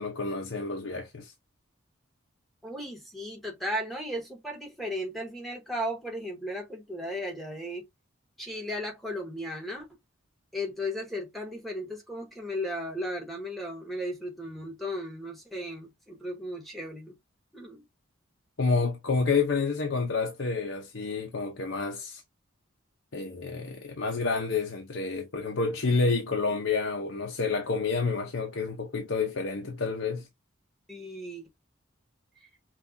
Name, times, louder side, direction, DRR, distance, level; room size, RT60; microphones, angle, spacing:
voice 1, 0.0-1.3 18.6-22.2 23.1-30.3, left 4 dB, 70° left, 0.8 m, -29 dB
voice 2, 2.6-7.8 8.4-9.9 10.5-17.2 17.5-17.9 30.9-31.4 32.4-32.5, equal, ahead, 1.1 m, -35 dB
5.9 x 2.4 x 2.7 m
head